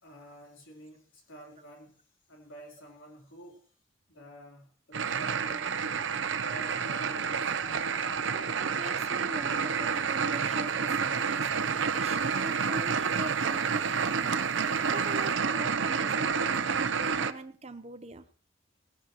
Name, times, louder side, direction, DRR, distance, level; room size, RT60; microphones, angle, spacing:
voice 1, 0.0-2.0 2.3-3.7 4.1-5.7 6.4-7.6, right 2 dB, 90° left, 0 dB, 3.8 m, -49 dB
sound 1, 4.9-17.3, right 6 dB, 70° right, 0.7 m, -29 dB
sound 2, 5.3-15.3, left 2 dB, 60° left, 2.0 m, -52 dB
voice 2, 8.3-11.5 11.9-14.6 14.9-18.3, right 2 dB, 35° right, 11 dB, 1.0 m, -42 dB
18.5 x 16.5 x 3.1 m, 0.41 s
head